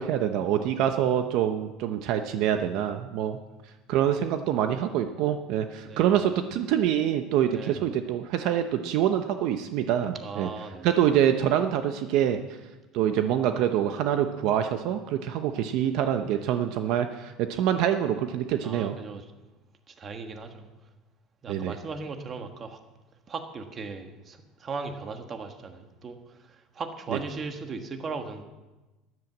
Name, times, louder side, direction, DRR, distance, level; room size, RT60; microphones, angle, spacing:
voice 1, 0.0-3.4 3.9-10.5 10.8-12.4 12.9-19.0 21.5-21.7 27.1-27.2, right 10 dB, 55° right, 7 dB, 0.8 m, -25 dB
voice 2, 7.5-7.9 10.1-10.9 18.6-19.2 19.9-20.7 21.4-22.8 23.3-28.4, right 4 dB, 25° right, 6 dB, 1.4 m, -38 dB
13.5 x 11.0 x 7.2 m, 1.1 s
cardioid pair, 165°, 0 cm